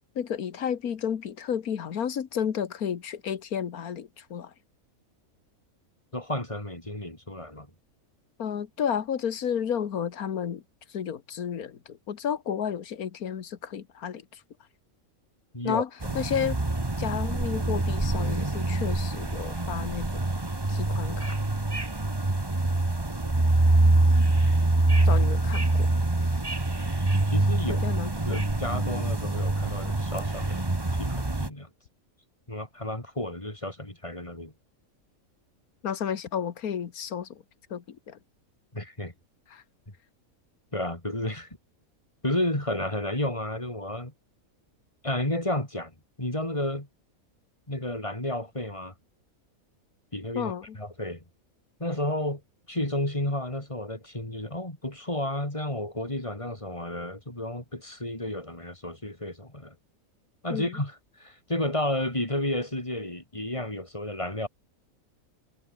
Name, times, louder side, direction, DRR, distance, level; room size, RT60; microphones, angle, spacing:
voice 1, 0.2-4.5 8.4-10.6 10.9-14.4 15.6-15.9 16.2-16.6 17.0-20.2 20.7-21.4 25.0-25.9 27.7-28.4 35.8-37.4 37.7-38.2 39.5-39.6 50.4-50.8 60.5-60.8, left 8 dB, 85° left, 1.8 m, -32 dB
voice 2, 6.1-7.7 15.5-15.8 16.1-16.2 27.3-27.8 28.3-30.6 30.9-31.7 32.5-34.5 38.7-39.1 40.7-41.5 42.2-44.1 45.0-45.9 46.2-46.9 47.7-48.9 50.1-51.2 51.8-52.4 52.7-59.7 60.4-64.5, left 1 dB, 20° left, 4.5 m, -32 dB
sound 1, 16.0-31.5, right 2 dB, 15° right, 1.7 m, -25 dB
omnidirectional pair, 1.5 m